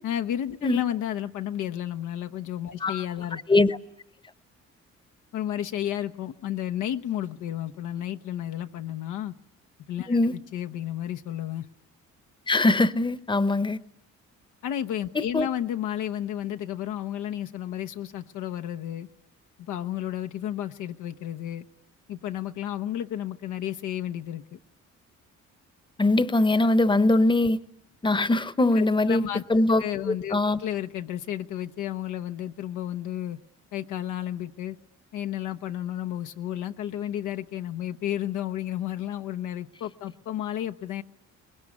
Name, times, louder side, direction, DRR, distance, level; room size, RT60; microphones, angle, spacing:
voice 1, 0.0-3.4 5.3-9.3 9.9-11.7 14.6-19.1 19.6-21.6 22.1-24.6 28.8-29.4 29.8-33.4 33.7-34.8 35.1-41.0, left 11 dB, 85° left, 0.9 m, -32 dB
voice 2, 12.5-13.8 15.1-15.5 26.0-27.6 28.0-29.2 29.5-29.8 30.3-30.6, left 2 dB, 15° left, 0.9 m, -21 dB
23.5 x 20.5 x 9.8 m
cardioid pair, 90°, 30 cm